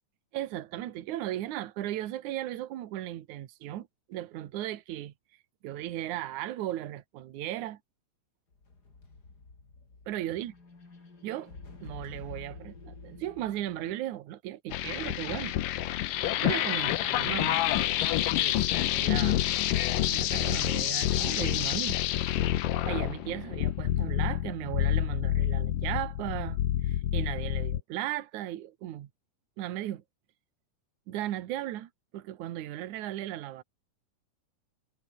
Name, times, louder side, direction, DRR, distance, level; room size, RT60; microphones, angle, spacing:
voice 1, 0.3-5.1 5.6-7.8 10.1-10.5 11.2-11.5 11.8-15.5 16.4-17.6 18.4-19.4 20.0-22.0 22.3-22.4 22.9-29.1 29.6-30.0 31.1-33.6, right 13 dB, 65° right, 2.6 m, -36 dB
sound 1, 8.5-14.0, left 3 dB, 30° left, 4.1 m, -48 dB
sound 2, 14.7-27.8, left 13 dB, 75° left, 2.8 m, -28 dB
omnidirectional pair, 3.9 m